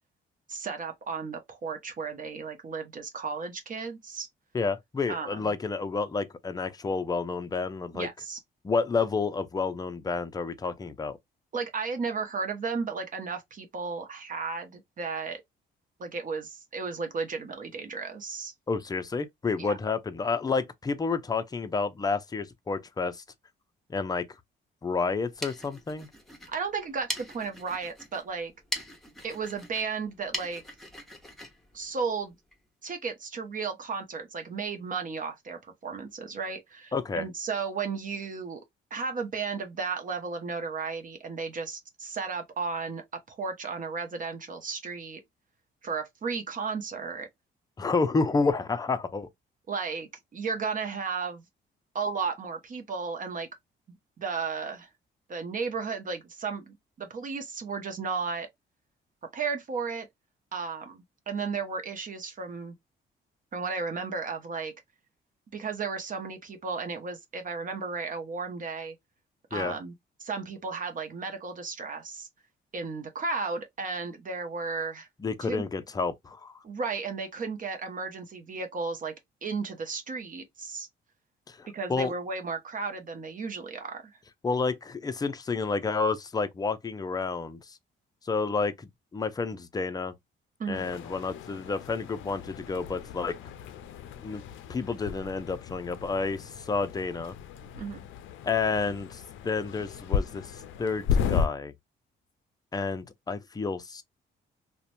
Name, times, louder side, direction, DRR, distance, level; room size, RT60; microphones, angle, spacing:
voice 1, 0.5-4.3 5.1-5.4 7.9-8.4 11.5-15.4 16.0-18.5 19.6-19.8 26.5-28.5 29.2-30.6 31.7-32.4 32.8-38.6 38.9-45.2 45.8-47.3 49.7-51.4 51.9-53.5 54.2-54.9 55.3-58.5 59.3-60.1 60.5-62.7 63.5-64.7 65.5-68.9 69.5-69.9 70.2-72.3 72.7-75.1 75.4-75.7 76.6-79.1 79.4-80.9 81.7-84.2 90.6-90.8 97.7-98.0, right 5 dB, 40° right, 0.6 m, -34 dB
voice 2, 4.5-8.1 8.6-11.2 18.7-23.2 23.9-24.3 24.8-26.1 36.9-37.2 47.8-49.3 69.5-69.7 75.2-76.5 81.5-82.1 84.4-87.8 88.2-90.1 90.7-93.3 94.2-94.4 94.7-97.3 98.4-101.7 102.7-104.0, left 4 dB, 20° left, 0.4 m, -30 dB
sound 1, 25.1-32.6, left 1 dB, ahead, 0.9 m, -41 dB
sound 2, 90.7-101.5, left 7 dB, 80° left, 0.4 m, -34 dB
2.8 x 2.1 x 2.5 m
cardioid pair, 90°, 20 cm